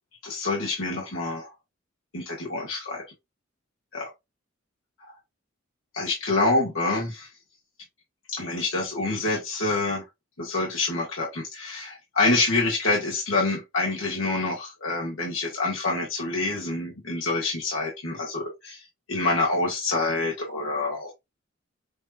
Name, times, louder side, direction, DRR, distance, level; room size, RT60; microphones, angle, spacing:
voice 1, 0.2-1.5 2.1-3.0 3.9-4.1 5.9-7.3 8.3-10.0 10.4-21.1, left 3 dB, 85° left, 1.6 m, -27 dB
6.5 x 2.8 x 2.4 m
head